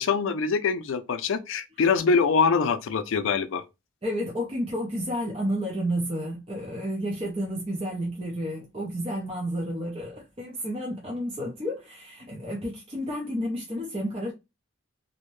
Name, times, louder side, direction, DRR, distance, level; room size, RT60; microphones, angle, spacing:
voice 1, 0.0-3.6, left 5 dB, 75° left, 0.4 m, -24 dB
voice 2, 4.0-14.3, equal, 25° right, 0.5 m, -31 dB
2.7 x 2.1 x 3.0 m
head